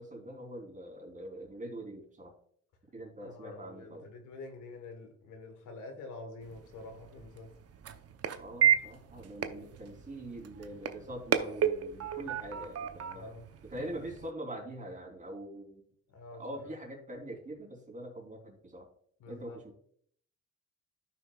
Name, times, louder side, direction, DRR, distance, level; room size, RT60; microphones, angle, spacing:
voice 1, 0.0-2.3 2.9-4.1 8.4-13.3 13.7-15.8 16.3-18.9 19.3-19.8, right 1 dB, 25° right, 3.3 m, -43 dB
voice 2, 3.2-7.5 13.1-13.5 16.1-16.4 19.2-19.6, left 3 dB, 80° left, 1.5 m, -47 dB
sound 1, 6.4-14.3, right 9 dB, 55° right, 0.8 m, -33 dB
13.0 x 5.9 x 2.4 m
cardioid pair, 90°, 30 cm